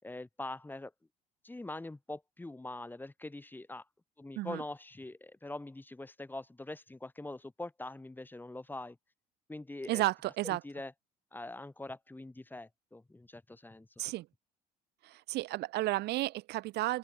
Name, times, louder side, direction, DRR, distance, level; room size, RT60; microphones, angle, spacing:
voice 1, 0.0-0.9 1.4-3.9 4.2-9.0 9.5-10.0 10.4-10.9 11.3-13.9, left 2 dB, 10° left, 7.2 m, -43 dB
voice 2, 9.9-10.6 14.0-14.2 15.0-17.0, right 17 dB, 80° right, 1.5 m, -32 dB
open air
cardioid pair, 110°, 17 cm